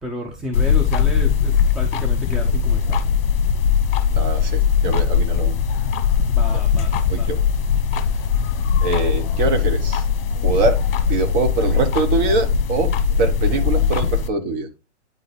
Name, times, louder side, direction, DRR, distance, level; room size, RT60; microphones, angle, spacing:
voice 1, 0.0-3.0 6.3-7.3, equal, ahead, 2 dB, 0.5 m, -31 dB
sound 1, 0.5-14.3, left 7 dB, 50° left, 1.0 m, -20 dB
voice 2, 4.1-5.5 6.5-6.6 7.1-7.4 8.8-10.0 10.4-10.8 11.0-14.7, right 3 dB, 40° right, 7 dB, 1.5 m, -23 dB
9.2 x 4.0 x 3.2 m, 0.26 s
hypercardioid pair, 130°, 35 cm